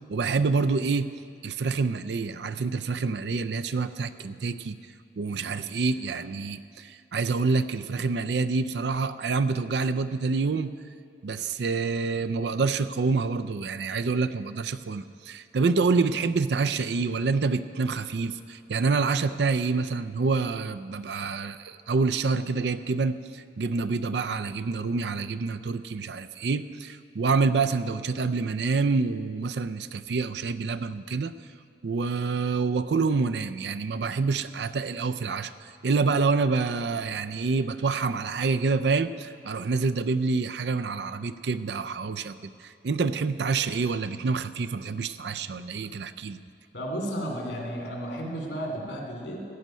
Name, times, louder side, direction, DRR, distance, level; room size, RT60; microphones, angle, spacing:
voice 1, 0.1-1.1 1.4-4.8 5.2-10.7 11.2-31.3 31.8-46.4, right 4 dB, 80° right, 12 dB, 0.5 m, -27 dB
voice 2, 46.7-49.4, right 1 dB, 90° left, 0 dB, 2.9 m, -33 dB
15.0 x 5.5 x 9.3 m, 2.2 s
head